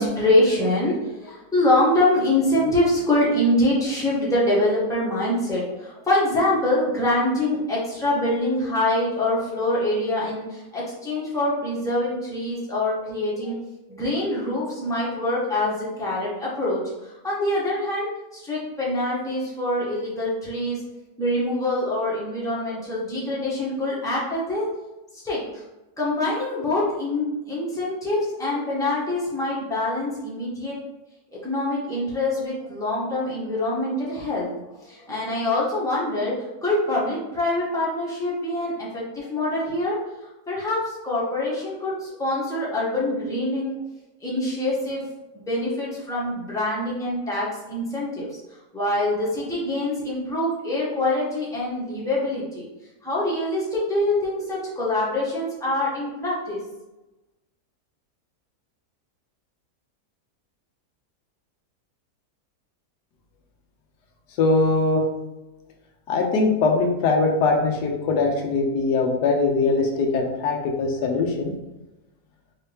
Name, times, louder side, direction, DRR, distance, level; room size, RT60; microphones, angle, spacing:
voice 1, 0.0-13.6 13.9-20.8 21.2-24.7 25.1-25.6 26.0-30.8 31.4-40.0 40.5-43.8 44.2-45.1 45.3-48.3 48.7-52.7 53.0-56.6, left 1 dB, ahead, -7 dB, 1.1 m, -25 dB
voice 2, 64.4-65.0 66.1-71.5, left 3 dB, 90° left, 2 dB, 1.3 m, -21 dB
4.6 x 2.8 x 3.4 m, 1.0 s
omnidirectional pair, 1.7 m